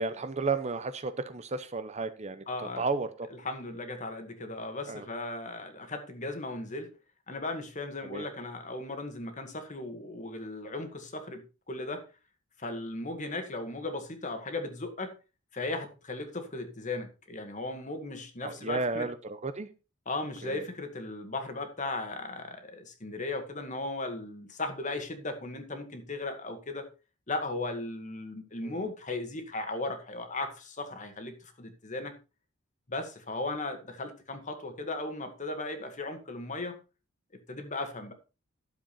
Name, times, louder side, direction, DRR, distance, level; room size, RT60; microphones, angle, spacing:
voice 1, 0.0-3.1 4.9-5.0 8.0-8.3 18.4-19.7 20.4-20.6 28.6-28.9, right 3 dB, 30° right, 0.8 m, -33 dB
voice 2, 2.5-2.8 3.4-6.9 7.3-12.1 12.6-15.1 15.5-19.1 20.1-26.9 27.3-32.1 32.9-36.8 37.3-38.1, left 2 dB, 35° left, 1.9 m, -37 dB
12.0 x 7.5 x 4.3 m
head